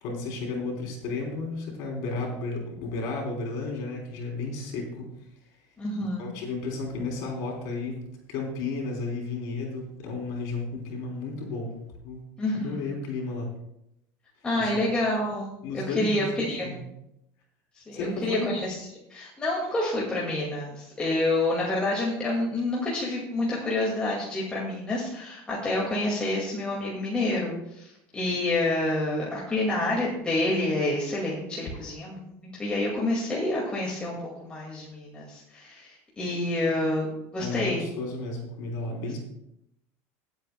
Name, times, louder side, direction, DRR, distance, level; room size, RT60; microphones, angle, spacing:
voice 1, 0.0-5.1 6.2-8.0 8.3-12.2 12.5-13.5 14.5-14.8 15.6-16.2 16.6-16.8 17.9-18.5 37.4-39.2, left 3 dB, 60° left, -1 dB, 3.3 m, -33 dB
voice 2, 5.8-6.3 12.4-12.9 14.4-16.7 17.7-18.7 19.1-34.2 34.4-37.1 37.3-37.8, left 2 dB, 15° left, -5 dB, 2.0 m, -28 dB
23.5 x 8.1 x 2.2 m, 0.82 s
cardioid pair, 155°, 8 cm